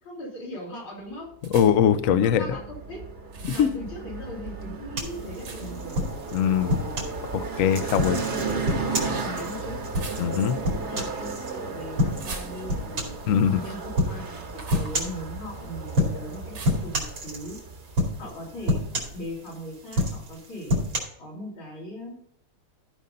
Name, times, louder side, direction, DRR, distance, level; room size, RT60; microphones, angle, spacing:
voice 1, 0.0-1.3 2.0-3.1 3.5-6.0 7.3-7.4 7.9-9.8 10.6-13.2 13.6-17.6 18.2-18.9 19.1-20.8 21.2-22.2, equal, 90° left, -3 dB, 3.9 m, -39 dB
sound 1, 1.4-1.9 3.3-3.8 5.4-5.9 7.8-8.1 9.9-10.6 12.1-13.0 14.5-15.0 16.5-16.9, right 4 dB, 60° right, 2.1 m, -41 dB
voice 2, 1.5-2.5 3.4-3.7 6.3-6.8 7.3-8.2 10.2-10.5 13.3-13.6, left 8 dB, 70° left, 12 dB, 0.7 m, -21 dB
sound 2, 1.7-19.1, right 4 dB, 40° right, 1.4 m, -35 dB
sound 3, 5.0-7.2 7.7-11.5 12.0-12.4 12.7-13.3 14.0-14.2 14.7-15.2 15.9-16.4 16.6-17.6 18.0-18.4 18.7-19.5 19.9-21.0, left 1 dB, 75° right, 3.3 m, -27 dB
14.5 x 5.3 x 3.9 m, 0.69 s
omnidirectional pair, 2.2 m